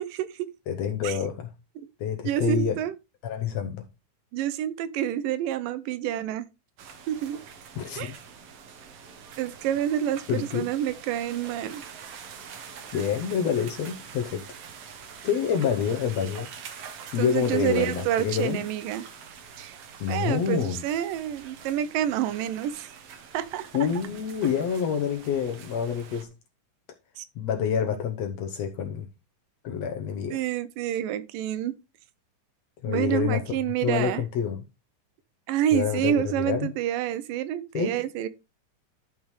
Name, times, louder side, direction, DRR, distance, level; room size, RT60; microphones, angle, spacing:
voice 1, 0.0-0.5 1.0-1.2 2.2-2.9 4.3-6.5 7.1-7.4 8.0-8.2 9.4-11.8 17.2-19.0 19.6-19.8 20.1-22.9 23.3-23.7 27.2-27.3 30.3-31.8 32.9-34.2 35.5-38.3, right 11 dB, 85° right, 2.4 m, -28 dB
voice 2, 0.7-1.5 2.0-2.8 3.2-3.8 7.8-8.1 10.3-10.7 12.9-14.5 15.2-16.5 17.1-18.6 20.0-20.8 23.7-26.3 27.4-29.1 29.6-30.4 32.8-33.5 33.8-34.6 35.7-36.7 37.7-38.0, left 7 dB, 70° left, 1.7 m, -27 dB
sound 1, 6.8-26.2, right 6 dB, 60° right, 1.8 m, -45 dB
12.0 x 5.4 x 3.2 m
omnidirectional pair, 3.8 m